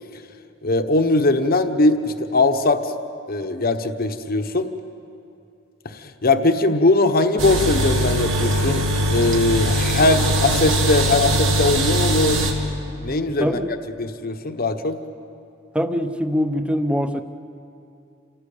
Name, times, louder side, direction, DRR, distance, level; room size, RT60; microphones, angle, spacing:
voice 1, 0.6-2.9 3.3-4.7 5.8-12.4 13.0-13.6 14.0-15.0, left 2 dB, 50° left, 7 dB, 1.1 m, -20 dB
sound 1, 7.4-12.5, equal, 80° right, 2.9 m, -21 dB
voice 2, 15.7-17.2, equal, 5° right, 8 dB, 0.9 m, -22 dB
27.5 x 17.5 x 8.5 m, 2.6 s
head